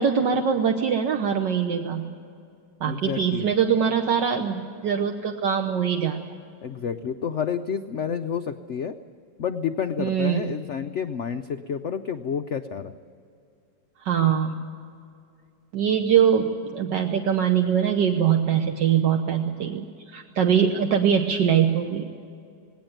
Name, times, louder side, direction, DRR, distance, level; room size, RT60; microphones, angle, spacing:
voice 1, 0.0-2.1 2.8-6.3 10.0-10.4 14.0-14.6 15.7-22.1, right 8 dB, 70° right, 4 dB, 1.6 m, -23 dB
voice 2, 2.8-3.5 6.6-9.0 9.4-12.9, left 7 dB, 85° left, 8 dB, 0.6 m, -29 dB
19.5 x 17.5 x 9.1 m, 2.4 s
omnidirectional pair, 2.1 m